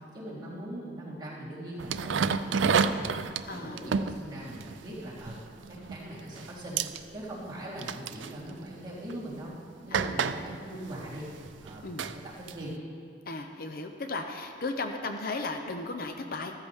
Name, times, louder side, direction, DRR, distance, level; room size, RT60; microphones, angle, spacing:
voice 1, 0.1-3.2 3.5-5.4 5.7-6.8 7.1-9.5 9.8-11.3 11.6-12.7, right 1 dB, 25° right, -9 dB, 3.6 m, -41 dB
sound 1, 1.8-6.0 6.3-6.5 6.8-7.0 7.8-8.4 9.1-9.2 9.9-12.7, right 5 dB, 85° right, 0.5 m, -30 dB
voice 2, 3.5-4.2 9.9-10.2 11.8-12.0 13.3-16.7, left 3 dB, 50° left, 5 dB, 0.7 m, -36 dB
14.5 x 13.5 x 3.5 m, 2.3 s
head